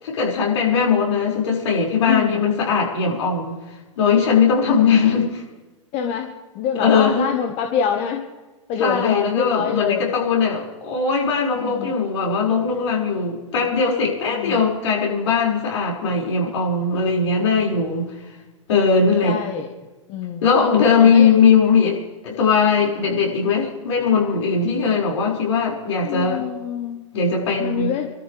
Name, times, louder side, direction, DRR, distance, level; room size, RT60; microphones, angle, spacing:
voice 1, 0.0-3.5 4.0-5.4 6.8-7.3 8.8-18.1 18.7-19.4 20.4-26.4 27.1-27.9, left 5 dB, 65° left, -2 dB, 5.5 m, -19 dB
voice 2, 2.1-2.4 4.7-5.0 5.9-8.2 8.7-10.1 11.5-11.9 14.3-14.6 19.2-19.7 20.1-20.5 21.0-21.3 26.0-27.0 27.6-28.1, left 7 dB, 40° left, 4 dB, 1.4 m, -25 dB
26.0 x 13.0 x 3.4 m, 1.2 s
hypercardioid pair, 110°, 16 cm